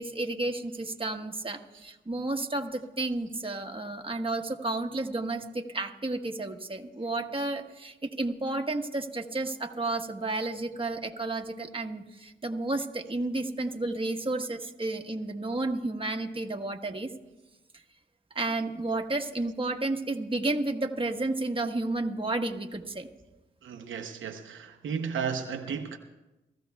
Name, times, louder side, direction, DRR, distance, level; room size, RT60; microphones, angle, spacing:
voice 1, 0.0-17.1 18.3-23.1, right 2 dB, 25° right, 1.3 m, -32 dB
voice 2, 23.6-26.0, right 6 dB, 85° right, 0.8 m, -34 dB
27.5 x 14.5 x 2.3 m
cardioid pair, 45°, 20 cm